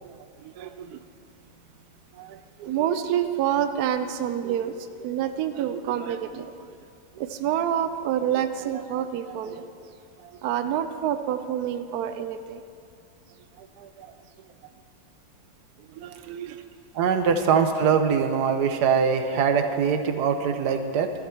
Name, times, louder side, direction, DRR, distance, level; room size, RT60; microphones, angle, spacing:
voice 1, 0.0-1.0 2.1-6.8 7.1-9.9 10.2-12.6 13.6-14.2 15.8-16.6, right 10 dB, 80° right, 9 dB, 0.8 m, -29 dB
voice 2, 16.9-21.1, right 6 dB, 60° right, 7 dB, 1.2 m, -22 dB
13.5 x 13.5 x 4.6 m, 2.3 s
omnidirectional pair, 2.2 m